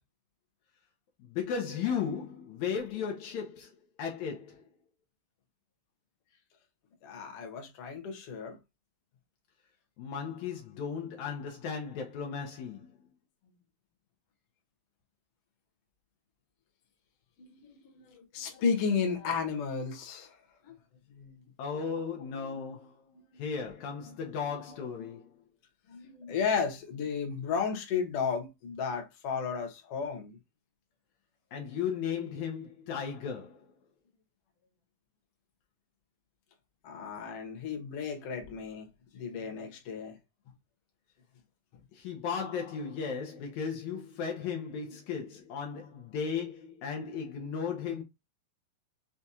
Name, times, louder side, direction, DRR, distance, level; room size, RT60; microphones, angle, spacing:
voice 1, 1.3-3.7 4.0-4.7 10.0-13.0 21.6-23.0 23.4-25.3 31.5-33.7 41.9-48.0, left 6 dB, 90° left, 1.6 m, -35 dB
voice 2, 7.0-8.6 17.4-20.4 20.6-20.7 21.1-21.3 23.1-23.2 24.1-24.2 25.9-30.4 36.8-38.9 39.1-40.2, left 6 dB, 65° left, 1.5 m, -33 dB
6.1 x 2.3 x 2.7 m
omnidirectional pair, 4.3 m